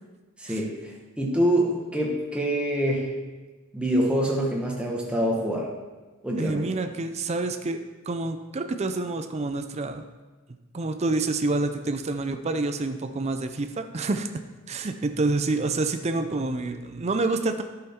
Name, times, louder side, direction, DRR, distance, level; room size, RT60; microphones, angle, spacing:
voice 1, 0.4-3.2 3.7-5.7 6.2-6.7, equal, 5° right, -2 dB, 1.2 m, -25 dB
voice 2, 6.4-7.8 8.1-10.0 10.7-14.3 14.7-17.6, right 3 dB, 30° right, 7 dB, 0.4 m, -27 dB
11.0 x 5.7 x 4.3 m, 1.3 s
head